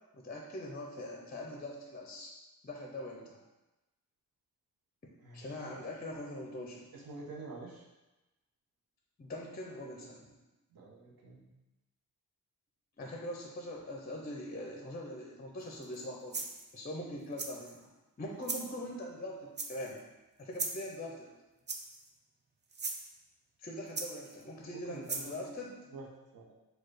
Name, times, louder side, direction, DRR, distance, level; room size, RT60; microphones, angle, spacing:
voice 1, 0.1-2.3 2.6-3.4 5.3-6.9 9.2-10.3 13.0-16.5 16.7-17.9 18.2-20.0 20.4-21.3 23.6-25.8, left 1 dB, 25° left, 0 dB, 0.5 m, -42 dB
voice 2, 5.2-5.8 6.9-7.9 10.7-11.5 24.9-25.5 25.9-26.1 26.3-26.5, right 3 dB, 70° right, -3 dB, 0.9 m, -48 dB
sound 1, 15.8-16.0 16.3-16.7 17.4-17.8 18.4-18.7 19.6-20.0 20.5-20.9 21.7-22.1 22.7-23.0 24.0-24.4 25.1-25.3, right 4 dB, 30° right, 0.4 m, -38 dB
4.5 x 2.3 x 4.8 m, 1.1 s
wide cardioid pair, 160°, 38 cm